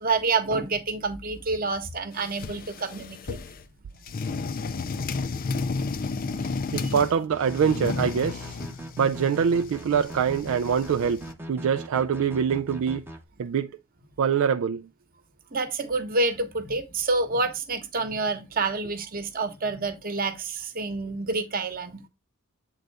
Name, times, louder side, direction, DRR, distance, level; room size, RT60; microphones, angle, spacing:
voice 1, 0.0-3.4 6.3-6.4 6.8-6.9 15.5-22.0, right 3 dB, 40° right, 1.0 m, -28 dB
sound 1, 2.1-3.7 4.1-7.2 7.5-11.3, left 4 dB, 40° left, 0.5 m, -33 dB
voice 2, 6.4-8.6 9.0-13.0 13.4-13.7 14.2-14.9, right 7 dB, 65° right, 0.3 m, -24 dB
sound 2, 7.3-13.2, equal, 10° right, 0.7 m, -40 dB
8.0 x 3.9 x 3.3 m
head